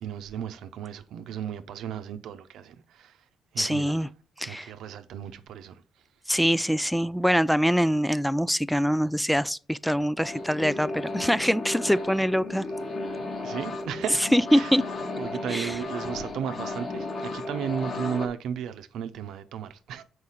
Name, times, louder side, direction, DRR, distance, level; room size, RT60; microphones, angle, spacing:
voice 1, 0.0-3.2 3.5-4.0 4.5-5.8 13.4-14.7 15.2-20.0, right 8 dB, 80° right, 0.7 m, -35 dB
voice 2, 3.6-4.1 4.4-4.7 6.3-12.6 14.2-14.8 15.5-15.8, equal, ahead, 0.3 m, -24 dB
sound 1, 10.2-18.3, left 2 dB, 50° left, 1.6 m, -34 dB
6.5 x 4.8 x 5.6 m
cardioid pair, 90°, 0 cm